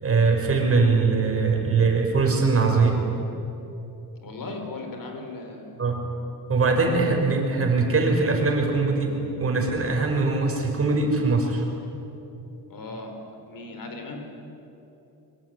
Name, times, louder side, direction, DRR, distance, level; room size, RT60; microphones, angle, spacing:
voice 1, 0.0-3.1 5.8-6.0 6.5-11.6, right 4 dB, 35° right, 2 dB, 5.8 m, -22 dB
voice 2, 4.2-5.8 6.6-6.7 12.7-13.2 13.5-14.2, left 3 dB, 60° left, 5 dB, 4.6 m, -37 dB
24.5 x 24.5 x 9.6 m, 2.9 s
cardioid pair, 120°, 38 cm